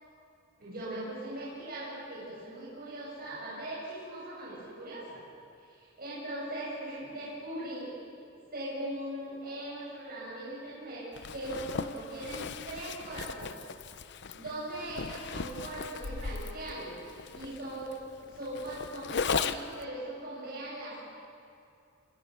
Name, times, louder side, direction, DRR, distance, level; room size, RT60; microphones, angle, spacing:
voice 1, 0.6-5.2 6.0-7.9 8.5-13.6 13.9-14.1 14.3-18.0 18.2-21.0, right 1 dB, 50° right, -7 dB, 7.8 m, -40 dB
Zipper (clothing), 11.1-19.8, left 5 dB, 60° left, 0.7 m, -37 dB
29.0 x 24.5 x 6.8 m, 2.5 s
head